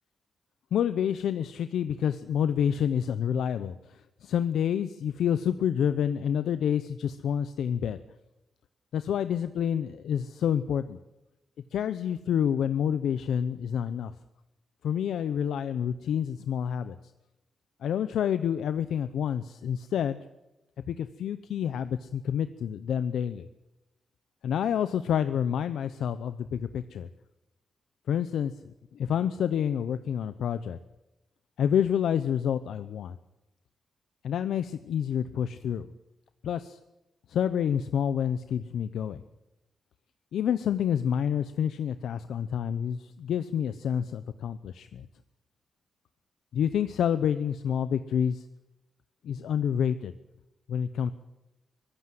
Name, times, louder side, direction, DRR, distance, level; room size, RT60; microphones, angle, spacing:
voice 1, 0.7-8.0 8.9-11.0 11.7-14.1 14.8-17.0 17.8-20.2 20.9-23.5 24.4-27.1 28.1-28.5 28.9-30.8 31.6-33.2 34.2-35.9 36.4-36.8 37.3-39.2 40.3-45.1 46.5-48.5 49.2-50.1 50.7-51.1, left 8 dB, 85° left, 11 dB, 0.8 m, -28 dB
24.0 x 15.5 x 7.8 m, 0.96 s
cardioid pair, 125°, 0 cm